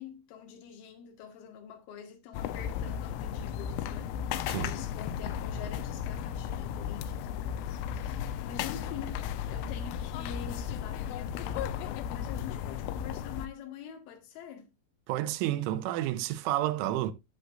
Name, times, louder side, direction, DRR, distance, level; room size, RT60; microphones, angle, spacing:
voice 1, 0.0-14.7, left 8 dB, 60° left, 3.1 m, -46 dB
sound 1, 2.3-13.5, left 9 dB, 90° left, 3.1 m, -35 dB
voice 2, 15.1-17.1, right 13 dB, 85° right, 3.2 m, -30 dB
11.0 x 7.9 x 2.5 m
omnidirectional pair, 5.5 m